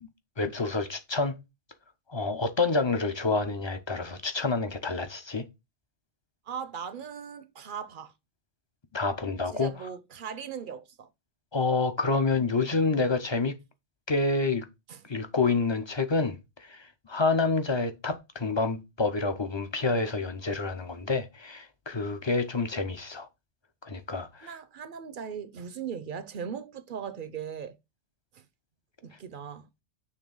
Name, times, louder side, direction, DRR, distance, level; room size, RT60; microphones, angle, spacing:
voice 1, 0.4-1.4 2.1-5.5 8.9-9.7 11.5-13.6 14.1-14.7 15.1-23.3 23.8-24.5, left 3 dB, 35° left, 0.4 m, -28 dB
voice 2, 6.5-8.1 9.5-11.1 14.9-15.0 24.4-27.8 28.3-28.4 29.0-29.7, right 7 dB, 55° right, 0.6 m, -39 dB
6.7 x 3.2 x 5.3 m
omnidirectional pair, 1.3 m